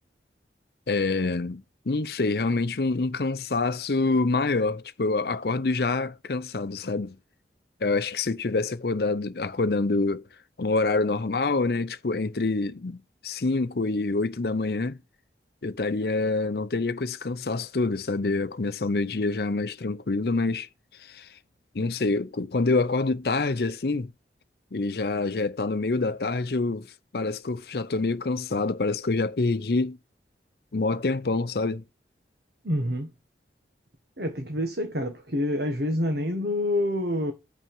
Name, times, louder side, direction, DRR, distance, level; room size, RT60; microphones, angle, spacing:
voice 1, 0.9-7.2 7.8-10.2 10.6-15.0 15.6-20.7 21.0-21.4 21.7-24.1 24.7-26.9 27.1-30.0 30.7-31.8, left 3 dB, 60° left, 0.6 m, -26 dB
voice 2, 32.6-33.1 34.2-37.3, left 1 dB, 65° right, 1.4 m, -27 dB
6.8 x 5.8 x 5.4 m
head